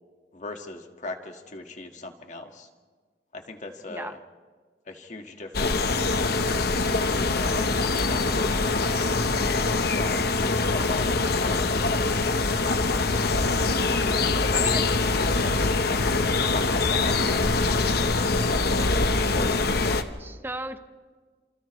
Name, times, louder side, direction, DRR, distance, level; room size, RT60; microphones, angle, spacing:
voice 1, 0.3-2.7 3.3-4.2 4.9-6.0 6.5-7.6 8.0-9.1 10.0-10.4 10.7-12.1 12.6-13.3 14.0-14.9 15.4-15.6 16.3-20.0, left 2 dB, 45° left, 4 dB, 1.8 m, -39 dB
sound 1, 5.5-20.0, left 3 dB, 65° left, 1.1 m, -24 dB
voice 2, 20.2-20.8, right 2 dB, 10° right, 9 dB, 0.9 m, -35 dB
30.0 x 27.5 x 3.2 m, 1.5 s
head